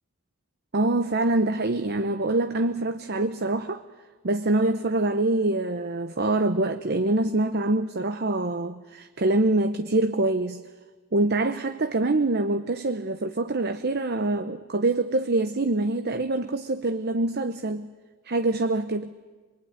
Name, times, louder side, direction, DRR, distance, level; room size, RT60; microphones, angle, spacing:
voice 1, 0.7-3.8 4.2-10.6 11.1-17.9 18.3-19.1, right 2 dB, 50° right, 8 dB, 0.9 m, -25 dB
24.5 x 23.0 x 9.5 m, 1.3 s
head